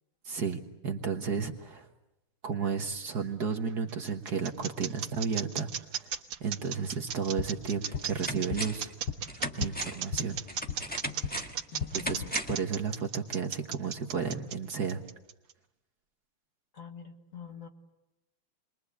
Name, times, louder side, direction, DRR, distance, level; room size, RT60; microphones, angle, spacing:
voice 1, 0.2-1.9 2.4-6.1 6.4-8.9 9.5-10.4 11.9-12.2 12.5-15.0, right 6 dB, 50° right, 4 dB, 1.7 m, -33 dB
sound 1, 3.7-15.5, right 8 dB, 75° right, 2.2 m, -36 dB
sound 2, 7.2-11.4 11.7-12.5, left 5 dB, 75° left, 2.6 m, -38 dB
sound 3, 7.3-7.4 7.8-8.9 9.3-12.7 13.0-13.1, equal, 5° left, 1.3 m, -38 dB
voice 2, 11.7-12.4 16.7-17.7, left 7 dB, 40° left, 4 dB, 1.8 m, -45 dB
29.0 x 22.5 x 8.3 m, 0.98 s
omnidirectional pair, 2.4 m